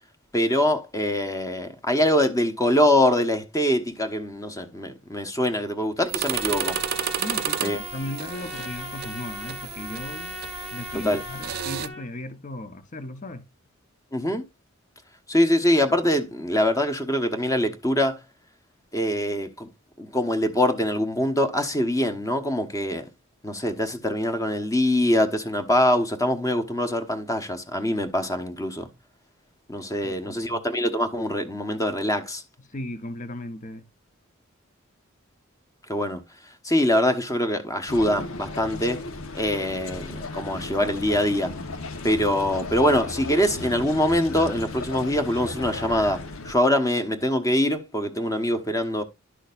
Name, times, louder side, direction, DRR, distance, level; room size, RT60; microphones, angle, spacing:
voice 1, 0.3-6.8 7.6-7.8 11.0-11.2 14.1-14.4 15.3-18.2 18.9-19.7 20.0-23.1 23.4-28.9 29.7-32.4 35.9-36.2 36.6-39.0 39.3-41.5 42.0-46.2 46.4-49.0, left 1 dB, 15° left, 1.1 m, -23 dB
sound 1, 6.1-11.9, right 9 dB, 50° right, 0.5 m, -32 dB
Trumpet, 6.3-12.1, left 3 dB, 60° left, 1.7 m, -38 dB
voice 2, 7.2-10.4 10.7-13.4 30.0-30.6 32.7-33.9, left 1 dB, 40° left, 1.0 m, -36 dB
sound 2, 37.9-46.5, left 3 dB, 85° left, 1.1 m, -35 dB
11.5 x 6.3 x 2.5 m
head